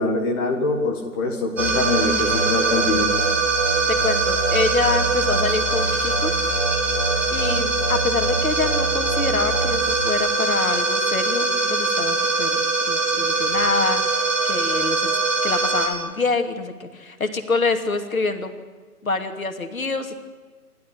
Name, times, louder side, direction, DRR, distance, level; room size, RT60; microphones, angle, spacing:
voice 1, 0.0-3.1, left 3 dB, 15° left, 2 dB, 1.7 m, -23 dB
sound 1, 1.6-15.9, right 3 dB, 55° right, 6.8 m, -22 dB
voice 2, 3.9-6.3 7.3-15.2 15.4-18.5 19.0-20.2, left 3 dB, 60° left, 7 dB, 2.8 m, -26 dB
28.5 x 12.5 x 9.7 m, 1.4 s
figure-of-eight pair, 145°, 46 cm